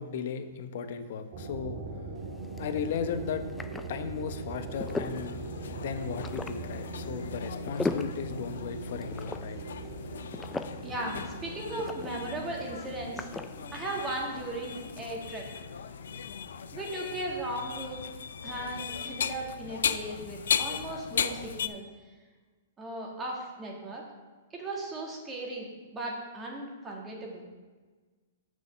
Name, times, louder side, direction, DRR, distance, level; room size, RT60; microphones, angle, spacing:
voice 1, 0.0-1.8 2.6-3.4 3.9-9.6, left 6 dB, 60° left, 9 dB, 0.9 m, -36 dB
sound 1, 1.3-18.7, right 2 dB, 65° right, 2.0 m, -42 dB
sound 2, 2.2-15.1, left 3 dB, 10° left, 0.4 m, -41 dB
sound 3, 4.7-21.7, left 7 dB, 80° left, 0.4 m, -37 dB
voice 2, 10.8-13.3 13.7-15.5 16.7-18.0 18.4-21.9 22.8-24.0 24.5-25.7 25.9-27.5, right 1 dB, 15° right, -1 dB, 2.0 m, -37 dB
6.5 x 5.4 x 6.7 m, 1.4 s
hypercardioid pair, 135°, 0 cm